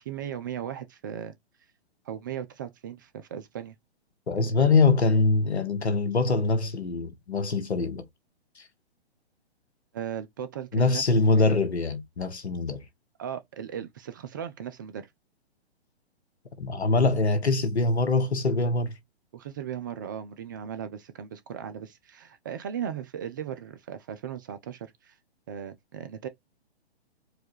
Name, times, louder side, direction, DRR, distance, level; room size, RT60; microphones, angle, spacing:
voice 1, 0.0-1.4 2.0-3.8 4.3-4.6 9.9-11.0 11.4-11.6 13.2-15.1 19.3-25.2 25.5-26.3, right 9 dB, 20° right, 0.3 m, -37 dB
voice 2, 4.3-8.0 8.6-8.7 10.7-12.8 16.6-18.9, left 3 dB, 85° left, 1.3 m, -23 dB
4.8 x 2.4 x 4.5 m
hypercardioid pair, 130°, 32 cm